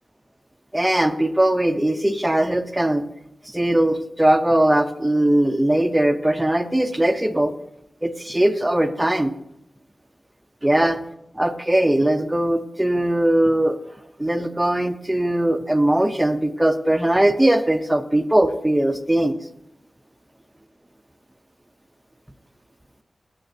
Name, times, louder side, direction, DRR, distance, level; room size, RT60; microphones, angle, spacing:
voice 1, 0.7-3.0 3.5-7.5 8.0-9.3 10.6-11.0 11.4-13.8 14.2-19.4, right 1 dB, 10° right, 8 dB, 0.6 m, -20 dB
15.5 x 8.9 x 2.7 m, 0.81 s
wide cardioid pair, 125°, 0 cm